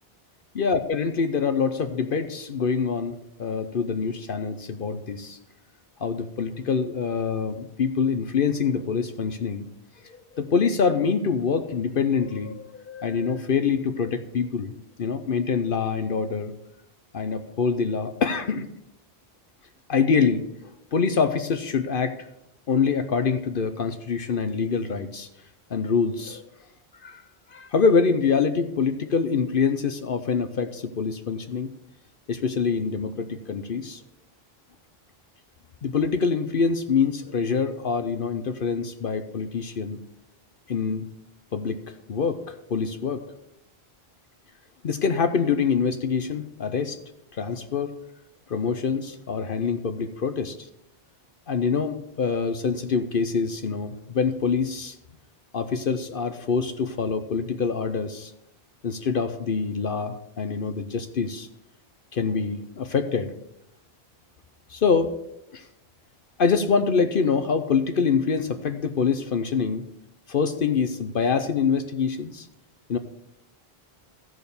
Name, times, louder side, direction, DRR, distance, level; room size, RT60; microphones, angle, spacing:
voice 1, 0.5-5.4 6.0-9.6 10.0-14.7 15.0-16.5 17.1-18.7 19.9-22.3 22.7-25.3 25.7-26.4 26.9-27.2 27.5-31.7 32.3-34.0 35.8-40.0 40.7-41.0 41.5-41.8 42.1-43.2 44.8-47.0 47.3-47.9 48.5-50.7 51.5-55.0 55.5-58.3 58.8-61.5 62.1-63.3 64.7-65.2 65.5-65.7 66.4-69.8 70.3-72.5 72.9-73.0, left 5 dB, 60° left, 8 dB, 0.9 m, -25 dB
14.0 x 6.3 x 6.9 m, 0.83 s
omnidirectional pair, 1.0 m